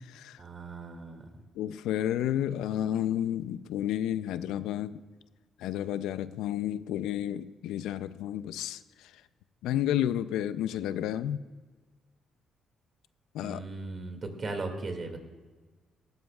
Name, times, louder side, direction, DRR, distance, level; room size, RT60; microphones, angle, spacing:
voice 1, 0.4-1.3 13.4-15.2, right 3 dB, 40° right, 5 dB, 2.2 m, -37 dB
voice 2, 1.6-5.0 5.6-8.8 9.6-11.4 13.3-13.6, left 11 dB, 90° left, 14 dB, 0.4 m, -31 dB
17.0 x 14.0 x 2.4 m, 1.4 s
cardioid pair, 90°, 0 cm